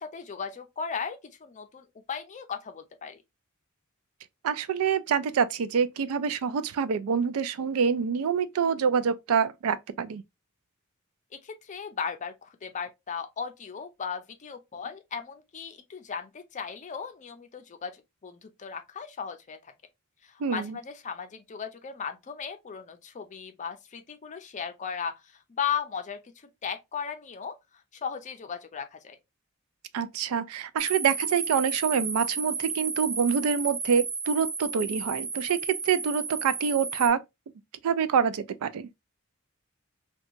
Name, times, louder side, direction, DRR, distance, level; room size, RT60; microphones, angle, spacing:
voice 1, 0.0-3.2 11.4-19.7 20.2-25.2 25.6-26.2 26.6-27.6 28.0-29.2, left 6 dB, 35° left, 0.5 m, -36 dB
voice 2, 4.4-10.2 20.4-20.8 29.9-37.2 37.8-38.9, right 6 dB, 75° right, 0.3 m, -26 dB
sound 1, 30.8-37.1, right 5 dB, 20° right, 0.5 m, -33 dB
2.8 x 2.2 x 2.4 m
head